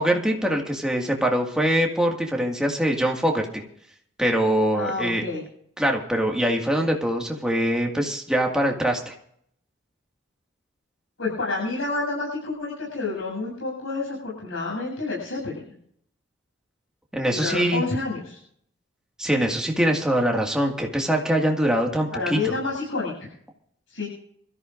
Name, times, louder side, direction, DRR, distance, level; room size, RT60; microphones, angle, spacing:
voice 1, 0.0-3.6 4.2-5.2 5.8-9.1 17.1-17.8 19.2-22.5, right 1 dB, 5° right, 1 dB, 1.9 m, -23 dB
voice 2, 4.7-5.4 11.2-15.6 17.3-18.4 22.1-23.3 23.9-24.1, left 3 dB, 90° left, -3 dB, 7.8 m, -29 dB
26.5 x 14.0 x 2.6 m, 0.69 s
head